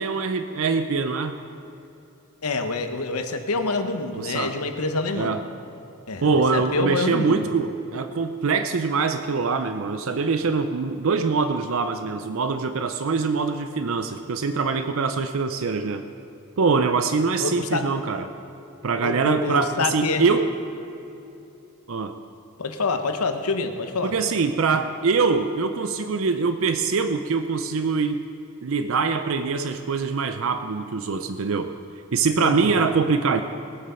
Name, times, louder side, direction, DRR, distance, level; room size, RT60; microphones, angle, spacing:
voice 1, 0.0-1.4 4.2-4.5 5.1-5.4 6.2-16.0 16.6-18.3 18.8-20.5 21.9-22.2 24.0-28.2 28.6-31.8 32.1-33.4, right 4 dB, 70° right, 9 dB, 0.5 m, -23 dB
voice 2, 2.4-5.3 6.1-7.4 17.4-17.9 18.9-20.3 22.6-24.1 32.4-32.7, left 3 dB, 85° left, 7 dB, 1.1 m, -26 dB
20.0 x 7.6 x 5.6 m, 2.8 s
head